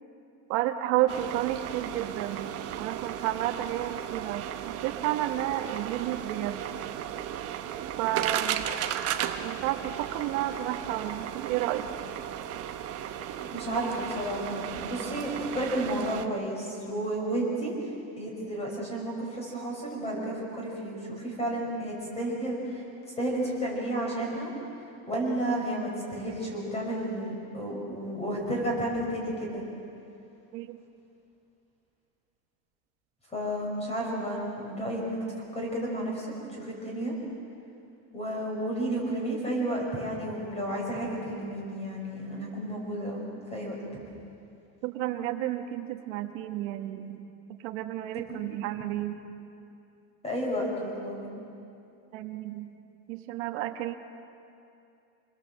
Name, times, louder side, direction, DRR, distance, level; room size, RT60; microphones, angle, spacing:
voice 1, 0.5-2.5 2.8-6.6 8.0-8.6 9.4-11.9 30.5-30.8 44.8-47.2 47.6-49.2 52.1-52.7 53.1-54.0, right 13 dB, 70° right, 5 dB, 1.4 m, -31 dB
sound 1, 1.1-16.3, right 10 dB, 35° right, 1.1 m, -35 dB
voice 2, 13.5-17.9 18.2-22.8 23.2-24.5 25.1-29.6 33.3-35.2 35.5-37.1 38.1-43.2 43.5-43.8 48.3-48.4 50.2-51.3, right 1 dB, 15° left, -1 dB, 5.9 m, -32 dB
27.0 x 21.0 x 7.7 m, 2.6 s
cardioid pair, 165°, 40 cm